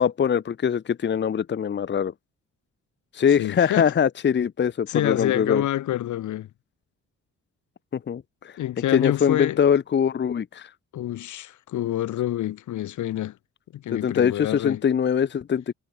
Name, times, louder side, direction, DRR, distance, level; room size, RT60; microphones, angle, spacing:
voice 1, 0.0-2.1 3.1-5.6 7.9-8.6 8.9-10.7 13.9-15.7, left 7 dB, 35° left, 0.9 m, -23 dB
voice 2, 3.4-3.9 4.9-6.5 8.6-9.6 10.9-13.4 13.7-14.8, left 13 dB, 75° left, 2.0 m, -27 dB
cardioid pair, 90°, 30 cm